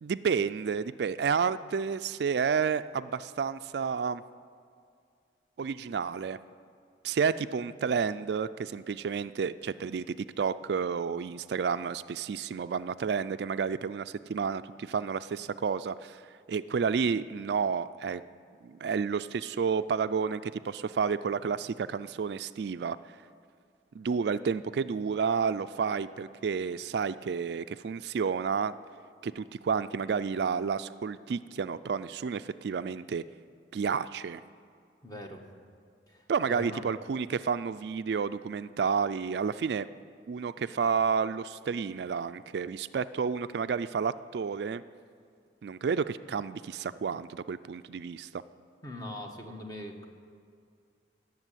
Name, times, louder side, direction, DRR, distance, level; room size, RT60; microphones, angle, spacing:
voice 1, 0.0-4.2 5.6-6.4 7.0-16.2 16.5-18.2 18.6-23.0 23.9-28.7 29.2-33.2 33.7-34.4 36.3-39.9 40.3-44.8 45.6-48.4, right 6 dB, 70° right, 13 dB, 0.3 m, -30 dB
voice 2, 35.0-35.4 36.1-36.8 48.8-50.1, left 1 dB, 20° left, 2 dB, 1.4 m, -41 dB
17.0 x 7.5 x 9.1 m, 2.3 s
head